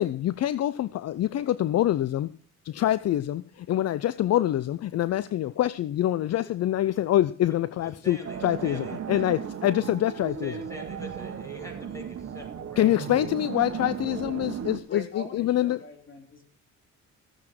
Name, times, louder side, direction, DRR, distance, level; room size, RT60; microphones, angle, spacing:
voice 1, 0.0-2.3 2.6-10.5 12.8-15.8, left 13 dB, 60° left, 0.5 m, -25 dB
voice 2, 8.0-9.4 10.4-12.9, equal, 10° left, 5.9 m, -43 dB
sound 1, 8.2-14.8, right 8 dB, 50° right, 1.7 m, -36 dB
voice 3, 14.9-16.4, left 1 dB, 40° left, 3.7 m, -42 dB
15.5 x 7.7 x 5.9 m
cardioid pair, 90°, 30 cm